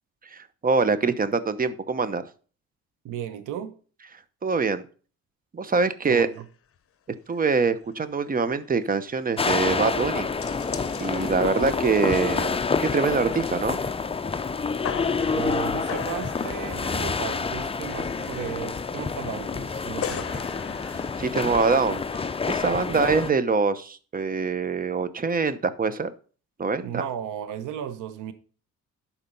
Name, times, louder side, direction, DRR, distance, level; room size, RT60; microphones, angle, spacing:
voice 1, 0.3-2.2 4.4-4.9 5.5-6.3 7.3-10.3 11.0-13.8 21.2-22.0 22.5-26.1 26.6-27.0, right 4 dB, 30° right, 0.9 m, -24 dB
voice 2, 3.0-3.7 6.0-6.4 15.3-20.5 22.9-23.1 26.8-28.3, right 9 dB, 90° right, 1.0 m, -35 dB
sound 1, 6.3-6.5 6.8-6.9 7.3-7.6 7.9-8.0 8.3-22.4, left 9 dB, 50° left, 0.9 m, -41 dB
sound 2, 9.4-23.3, left 4 dB, 20° left, 0.5 m, -28 dB
11.5 x 4.4 x 5.4 m
cardioid pair, 90°, 30 cm